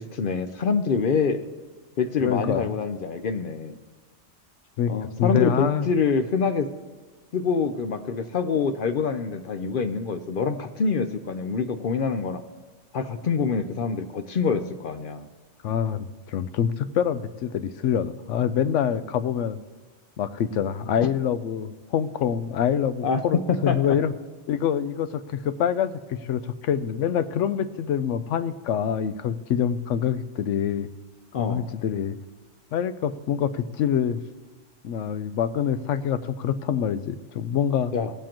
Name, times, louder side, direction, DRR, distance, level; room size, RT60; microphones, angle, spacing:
voice 1, 0.0-1.5 2.0-3.8 4.9-6.7 7.3-12.4 12.9-15.3 23.0-23.2 23.7-24.0 31.3-31.7 37.9-38.1, left 5 dB, 55° left, 7 dB, 0.7 m, -26 dB
voice 2, 2.2-2.8 4.8-4.9 5.2-5.9 15.6-19.6 20.2-24.1 24.5-30.9 31.4-32.2 32.7-34.2 34.8-37.9, left 8 dB, 85° left, 12 dB, 0.9 m, -25 dB
18.0 x 7.4 x 3.0 m, 1.3 s
omnidirectional pair, 1.2 m